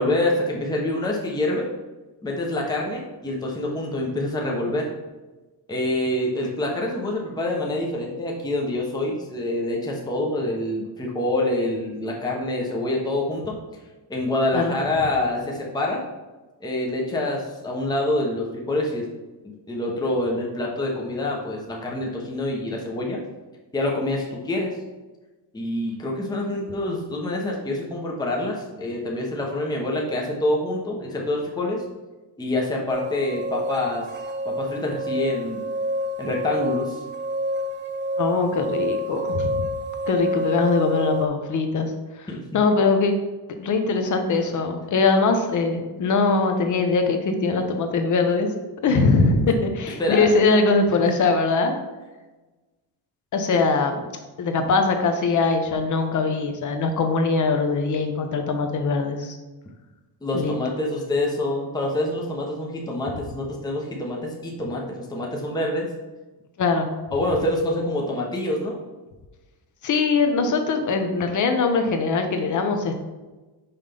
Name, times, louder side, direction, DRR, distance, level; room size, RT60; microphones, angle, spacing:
voice 1, 0.0-1.7 2.2-4.9 5.7-13.5 14.1-16.0 16.6-19.0 19.4-23.2 23.7-24.7 25.5-31.8 32.4-34.0 34.5-35.6 36.2-37.0 42.3-42.6 50.0-50.3 60.2-65.9 67.1-68.8, left 1 dB, 10° left, -1 dB, 0.8 m, -26 dB
sound 1, 32.9-41.3, equal, 25° right, 0.4 m, -28 dB
voice 2, 38.2-39.7 40.1-42.3 42.5-43.1 43.6-48.5 48.8-51.8 53.3-54.0 54.4-59.4 60.3-60.5 66.6-66.9 69.8-73.0, left 4 dB, 40° left, 6 dB, 0.8 m, -22 dB
5.7 x 5.4 x 3.4 m, 1.2 s
cardioid pair, 160°, 45 cm